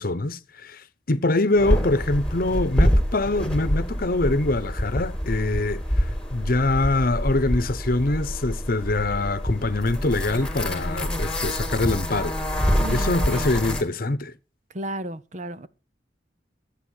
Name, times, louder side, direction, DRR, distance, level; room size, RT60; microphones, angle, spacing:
voice 1, 0.0-12.3 12.9-14.3, left 2 dB, 55° left, 1.0 m, -24 dB
sound 1, 1.6-13.8, equal, 5° left, 2.7 m, -26 dB
voice 2, 12.8-13.5 14.7-15.7, right 1 dB, 45° right, 0.9 m, -33 dB
14.5 x 8.2 x 6.6 m
head